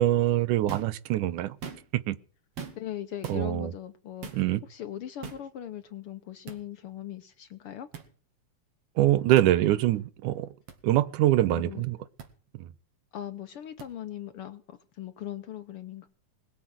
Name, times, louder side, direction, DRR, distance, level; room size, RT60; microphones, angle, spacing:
voice 1, 0.0-1.6 1.9-2.2 3.3-3.7 4.3-4.6 9.0-10.5 10.8-12.0 12.6-12.7, right 14 dB, 90° right, 2.4 m, -24 dB
sound 1, 0.7-1.0 1.5-2.0 2.6-2.9 3.2-3.4 4.2-4.5 5.2-5.5 6.5-6.6 7.9-8.1 9.3-9.5 10.7-10.8 12.2-12.3 13.8-13.9, right 6 dB, 55° right, 2.9 m, -41 dB
voice 2, 2.7-4.4 4.7-7.9 11.5-11.8 13.1-16.1, left 11 dB, 70° left, 1.3 m, -39 dB
21.0 x 7.7 x 7.7 m
omnidirectional pair, 3.5 m